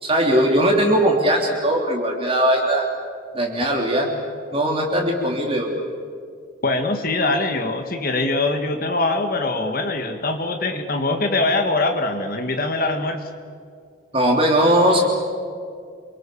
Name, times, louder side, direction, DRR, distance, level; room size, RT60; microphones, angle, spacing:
voice 1, 0.0-2.8 3.3-4.1 4.5-5.7 14.1-15.0, equal, 25° right, 0 dB, 3.4 m, -19 dB
voice 2, 6.6-13.2, left 2 dB, 45° left, 5 dB, 1.8 m, -23 dB
29.0 x 24.0 x 7.1 m, 2.2 s
head